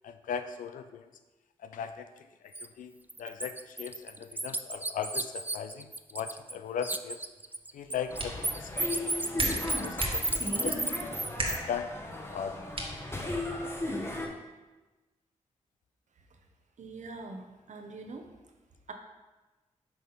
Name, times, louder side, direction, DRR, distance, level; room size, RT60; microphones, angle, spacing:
voice 1, 0.0-1.1 1.6-2.9 3.2-7.2 7.7-10.2 10.5-10.8 11.3-11.9 12.2-12.6, left 7 dB, 85° left, 9 dB, 0.4 m, -38 dB
Bird, 2.5-2.7 3.1-6.6 6.8-11.6, right 2 dB, 15° right, 0.3 m, -33 dB
sound 1, 7.8-13.8, right 1 dB, 45° right, 1.3 m, -39 dB
sound 2, 8.1-14.3, left 1 dB, 20° left, 1.1 m, -36 dB
voice 2, 16.8-18.3 18.9-19.0, right 3 dB, 65° right, 4 dB, 0.9 m, -43 dB
6.0 x 3.6 x 5.6 m, 1.2 s
cardioid pair, 55°, 13 cm